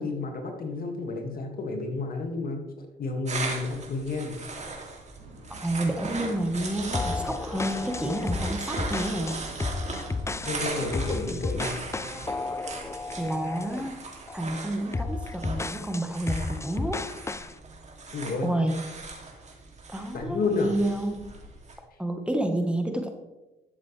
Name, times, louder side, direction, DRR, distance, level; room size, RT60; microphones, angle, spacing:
voice 1, 0.0-2.6 3.0-4.4 10.4-11.8 18.1-18.5 20.1-20.7, left 3 dB, 55° left, 3 dB, 2.1 m, -31 dB
sound 1, 3.3-21.7, right 3 dB, 40° right, 2.7 m, -39 dB
sound 2, 5.2-12.4, right 1 dB, 85° right, 2.8 m, -47 dB
voice 2, 5.5-9.4 11.3-11.4 13.2-14.0 14.3-17.0 18.4-18.8 19.9-21.2 22.0-23.1, right 1 dB, 5° right, 4 dB, 1.3 m, -29 dB
sound 3, 6.9-13.9 14.3-14.5 14.9-17.5, left 3 dB, 15° left, 0.5 m, -33 dB
12.0 x 7.8 x 3.3 m, 1.0 s
supercardioid pair, 65°, 18 cm